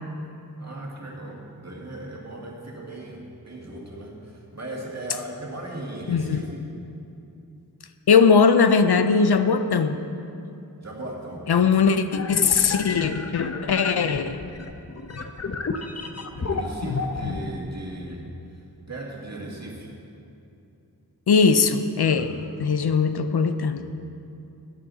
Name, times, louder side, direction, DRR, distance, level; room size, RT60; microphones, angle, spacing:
voice 1, 0.6-6.7 10.8-11.5 16.4-18.3 18.9-19.9 22.0-22.5 23.8-23.9, right 1 dB, 45° right, -2 dB, 2.0 m, -37 dB
voice 2, 6.1-6.4 8.1-10.0 11.5-14.4 21.3-22.3 22.6-23.8, left 5 dB, 80° left, 10 dB, 0.6 m, -20 dB
sound 1, 12.1-17.4, left 4 dB, 40° left, 0.7 m, -31 dB
12.5 x 11.0 x 4.1 m, 2.7 s
wide cardioid pair, 70°, 38 cm